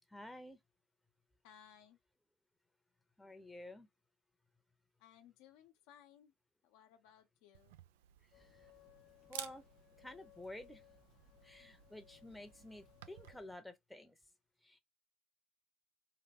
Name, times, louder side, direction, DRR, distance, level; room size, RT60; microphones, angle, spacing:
voice 1, 0.1-0.6 3.2-3.9 8.3-8.7 9.3-9.7 10.0-10.8 11.4-14.2 14.6-14.8, left 1 dB, 5° left, 0.8 m, -51 dB
voice 2, 1.4-2.0 5.0-6.3 6.6-7.8, left 9 dB, 75° left, 0.7 m, -62 dB
Camera, 7.5-13.4, right 12 dB, 80° right, 0.3 m, -55 dB
sound 1, 8.3-13.6, left 14 dB, 45° left, 0.3 m, -64 dB
3.3 x 2.2 x 2.7 m
hypercardioid pair, 80°, 0 cm